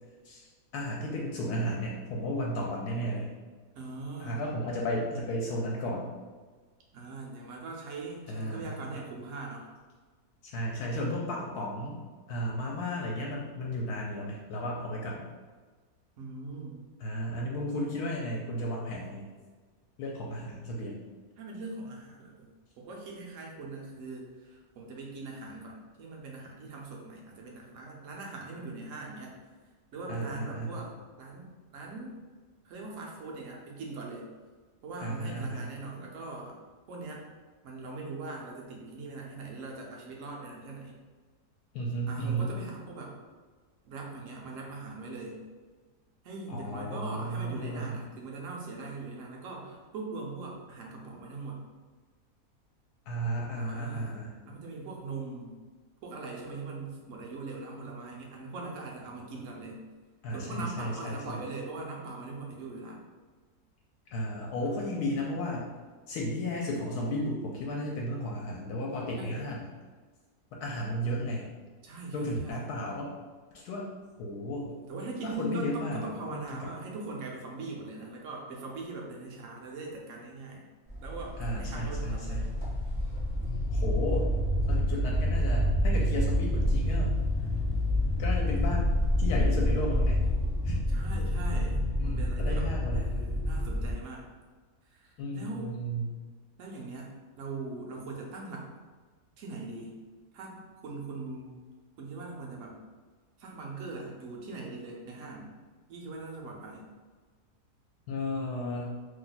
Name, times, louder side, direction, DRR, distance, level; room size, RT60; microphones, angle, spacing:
voice 1, 0.7-3.3 4.2-6.1 8.3-9.0 10.5-12.0 12.3-15.3 17.0-19.3 20.0-21.0 30.1-30.8 35.0-35.7 41.7-42.5 46.5-48.0 53.1-54.4 60.2-61.4 64.1-65.7 66.1-69.7 70.5-71.5 72.1-73.1 73.5-73.9 74.2-74.8 75.2-76.7 81.4-82.5 83.7-84.3 84.7-87.1 88.2-88.9 89.2-90.2 90.6-90.8 91.6-91.7 92.0-93.0 95.2-96.1 108.1-109.0, equal, 80° left, -2 dB, 1.1 m, -34 dB
voice 2, 3.7-4.4 6.9-9.7 16.2-16.8 21.4-22.5 22.8-29.3 29.9-30.9 31.2-32.2 32.6-34.3 34.8-36.6 36.9-37.2 37.6-41.0 42.1-43.1 43.8-45.4 46.2-51.6 53.6-54.2 54.5-55.5 56.0-59.8 60.3-63.0 64.7-65.0 69.1-69.5 71.8-72.6 74.7-80.6 81.0-82.5 90.9-94.3 94.9-95.7 96.6-98.7 99.4-100.0 100.3-101.6 102.0-102.8 103.4-105.5 105.9-106.9, right 3 dB, 60° right, -1 dB, 0.9 m, -41 dB
sound 1, 80.9-93.9, left 1 dB, 15° left, 0.5 m, -28 dB
2.9 x 2.2 x 3.9 m, 1.4 s
omnidirectional pair, 1.7 m